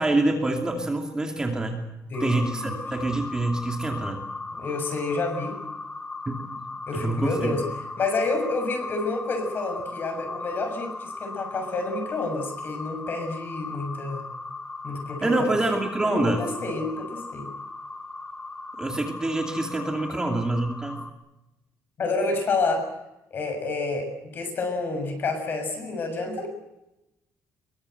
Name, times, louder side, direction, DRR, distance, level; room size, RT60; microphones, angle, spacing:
voice 1, 0.0-1.8 2.2-4.2 6.3-6.4 6.9-7.5 15.2-16.4 18.8-21.0, right 2 dB, 15° right, 2 dB, 2.6 m, -26 dB
voice 2, 2.1-2.8 4.5-5.6 6.9-7.6 8.0-14.2 14.8-15.5 16.0-17.5 20.1-20.2 22.0-22.9 23.3-26.5, left 3 dB, 40° left, 6 dB, 6.6 m, -29 dB
sound 1, 2.1-21.1, left 3 dB, 15° left, 1.5 m, -37 dB
24.5 x 23.0 x 7.9 m, 0.93 s
cardioid pair, 175°, 6 cm